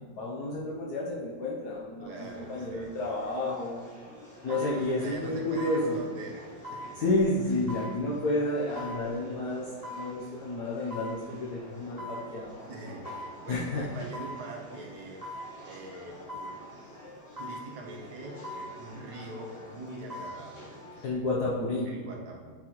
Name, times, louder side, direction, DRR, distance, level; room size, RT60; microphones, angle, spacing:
voice 1, 0.0-3.8 4.4-6.0 7.0-9.7 9.9-12.5 13.5-13.9 21.0-21.9, left 2 dB, 65° left, -4 dB, 1.3 m, -30 dB
voice 2, 2.0-2.9 4.5-7.2 12.7-13.1 13.4-15.2 15.6-16.5 17.4-20.7 21.1-21.4 21.9-22.5, right 2 dB, 65° right, -1 dB, 1.4 m, -43 dB
sound 1, 2.1-21.1, equal, 35° left, 1.5 m, -49 dB
sound 2, 3.3-3.5 4.5-4.7 5.6-5.8 6.6-6.9 7.7-7.9 8.8-9.0 9.8-10.1 10.9-11.2 12.0-12.2 13.0-13.3 14.1-14.4 15.2-15.5 16.3-16.5 17.4-17.6 18.4-18.7 19.9-20.4 20.8-20.9, left 1 dB, 15° right, 0.7 m, -39 dB
8.5 x 4.0 x 3.0 m, 1.5 s
omnidirectional pair, 1.9 m